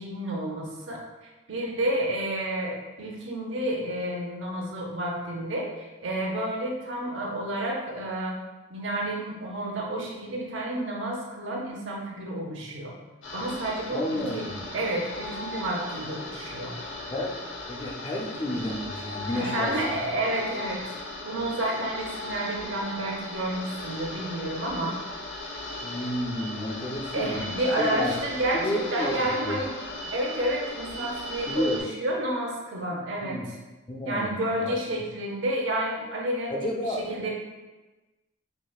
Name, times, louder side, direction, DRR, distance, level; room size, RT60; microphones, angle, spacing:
voice 1, 0.0-8.4 8.7-12.9 13.3-14.5 14.7-16.7 19.4-20.8 21.2-25.0 27.1-29.8 30.1-33.6 34.0-37.3, right 1 dB, 65° right, -1 dB, 0.6 m, -30 dB
sound 1, 13.2-31.8, left 2 dB, 80° left, 0.8 m, -37 dB
voice 2, 13.9-14.6 17.1-17.4 17.7-20.0 25.8-27.4 27.8-28.1 28.5-29.6 31.5-31.8 33.2-33.5 33.9-34.3 34.6-34.8 36.5-37.0, left 1 dB, 25° left, 0 dB, 0.4 m, -31 dB
4.7 x 2.1 x 2.3 m, 1.1 s
head